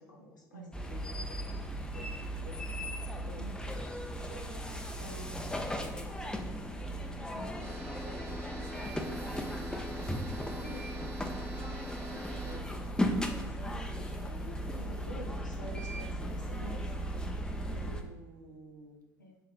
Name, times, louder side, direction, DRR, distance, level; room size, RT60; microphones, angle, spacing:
voice 1, 0.0-1.6 1.9-3.4 4.1-6.7 7.3-8.4 8.6-11.1 11.6-12.9 13.5-17.9 19.2-19.4, left 1 dB, 85° left, 0 dB, 0.5 m, -50 dB
sound 1, 0.7-18.0, equal, 10° left, 0.4 m, -37 dB
voice 2, 3.4-3.8 7.3-7.7 17.6-19.0, right 2 dB, 85° right, 3 dB, 0.4 m, -50 dB
sound 2, 7.6-12.6, equal, 40° right, 1.1 m, -44 dB
sound 3, 8.7-17.6, right 1 dB, 60° right, 1.1 m, -59 dB
3.3 x 2.2 x 3.6 m, 1.1 s
figure-of-eight pair, 50°, 10 cm